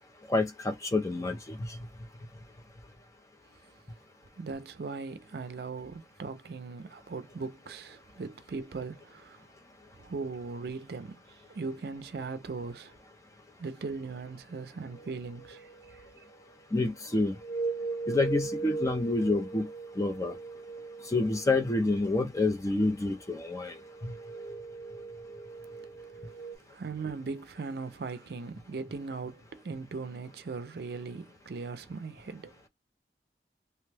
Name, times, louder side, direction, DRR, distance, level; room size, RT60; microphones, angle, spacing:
voice 1, 0.3-1.8 16.7-17.4 18.1-19.7 20.0-20.4 21.1-23.8 24.0-24.1, left 2 dB, 20° left, 0.4 m, -28 dB
voice 2, 4.4-9.5 10.0-12.9 13.6-16.0 26.1-26.3 26.7-32.6, right 4 dB, 60° right, 0.4 m, -39 dB
sound 1, 14.9-16.1 17.3-22.0 22.9-23.0 23.3-26.6, right 4 dB, 75° left, 1.0 m, -39 dB
2.8 x 2.2 x 3.2 m
head